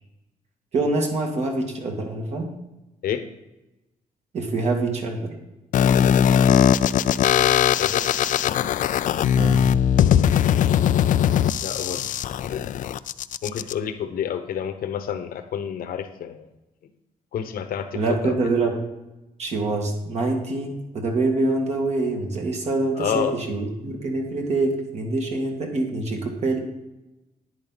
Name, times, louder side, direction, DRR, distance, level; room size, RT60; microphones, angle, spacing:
voice 1, 0.7-2.5 4.3-5.3 9.4-9.6 17.9-18.8 19.4-26.6, right 3 dB, 50° right, 1 dB, 2.0 m, -25 dB
sound 1, 5.7-13.7, left 9 dB, 60° left, 0.4 m, -20 dB
voice 2, 7.3-8.1 10.5-11.2 11.6-12.7 13.4-16.5 17.3-18.4 22.9-23.4, left 9 dB, 75° left, 8 dB, 1.1 m, -30 dB
11.0 x 9.6 x 4.0 m, 0.98 s
wide cardioid pair, 160°, 15 cm